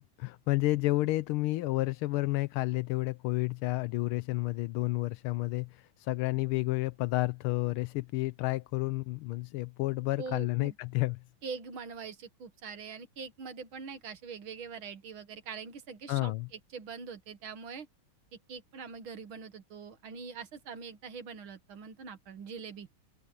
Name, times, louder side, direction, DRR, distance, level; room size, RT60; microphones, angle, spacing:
voice 1, 0.0-11.2 16.1-16.5, left 19 dB, 85° left, 1.5 m, -31 dB
voice 2, 10.2-10.8 11.4-17.9 18.3-22.9, right 5 dB, 70° right, 2.4 m, -43 dB
open air
omnidirectional pair, 2.3 m